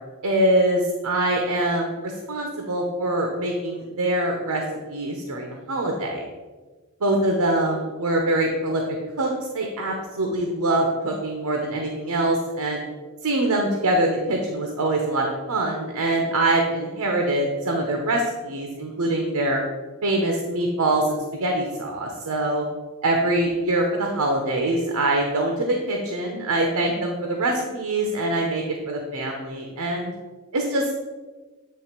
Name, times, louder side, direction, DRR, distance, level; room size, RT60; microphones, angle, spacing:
voice 1, 0.2-6.2 7.0-8.8 9.2-12.8 13.2-19.6 20.0-22.6 23.0-30.1 30.5-30.8, right 1 dB, 85° right, 2 dB, 0.8 m, -24 dB
8.4 x 3.3 x 4.5 m, 1.3 s
head